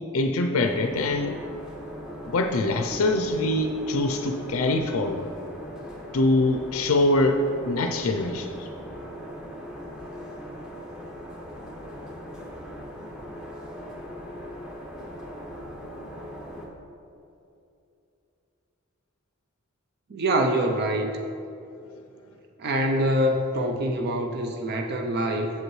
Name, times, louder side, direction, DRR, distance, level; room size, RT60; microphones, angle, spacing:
voice 1, 0.1-1.4 2.2-5.3 6.1-8.5, left 2 dB, 85° left, 5 dB, 0.5 m, -24 dB
sound 1, 0.6-16.7, equal, 5° right, 0.9 m, -39 dB
voice 2, 20.1-21.1 22.6-25.5, right 1 dB, 50° right, 3 dB, 0.5 m, -25 dB
7.9 x 7.1 x 3.1 m, 2.7 s
head